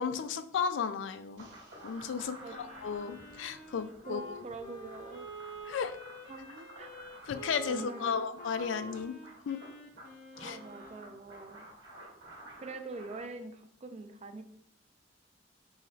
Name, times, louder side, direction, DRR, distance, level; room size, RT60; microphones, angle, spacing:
voice 1, 0.0-1.5 1.8-4.4 5.7-6.0 7.3-9.2 9.5-9.6 10.4-10.6, left 6 dB, 85° left, 11 dB, 0.3 m, -34 dB
sound 1, 1.4-13.2, right 1 dB, 75° right, 1.5 m, -52 dB
Wind instrument woodwind instrument, 2.3-11.2, right 1 dB, 45° left, 0.7 m, -48 dB
voice 2, 4.1-5.3 6.3-6.9 7.7-8.2 10.4-11.7 12.6-14.4, right 3 dB, 35° right, 8 dB, 0.4 m, -44 dB
4.8 x 2.9 x 2.7 m, 0.72 s
head